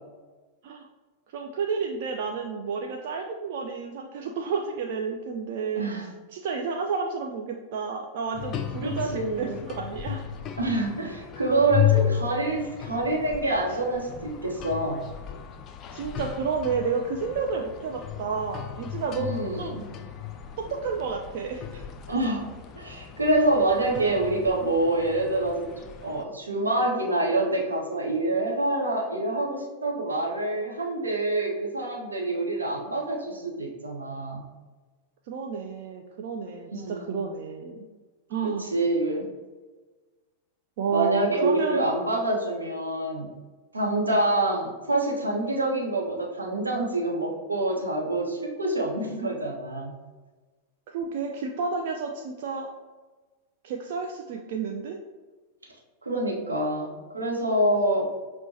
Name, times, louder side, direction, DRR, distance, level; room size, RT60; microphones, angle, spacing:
voice 1, 1.3-5.9 6.3-10.2 15.9-19.3 19.6-19.8 20.6-21.8 35.3-37.9 38.3-38.7 40.8-41.9 50.9-52.7 53.6-55.0, right 5 dB, 50° right, 1 dB, 0.3 m, -31 dB
voice 2, 5.8-6.1 8.8-9.6 10.6-15.0 19.2-19.8 22.1-22.5 22.8-25.7 26.0-34.4 36.7-37.2 38.4-39.3 40.9-43.3 43.7-49.9 56.0-58.1, right 2 dB, 80° right, -2 dB, 0.8 m, -26 dB
sound 1, 8.3-26.2, left 10 dB, 30° left, 0.3 m, -34 dB
5.9 x 2.1 x 2.8 m, 1.3 s
figure-of-eight pair, 90°, 0 cm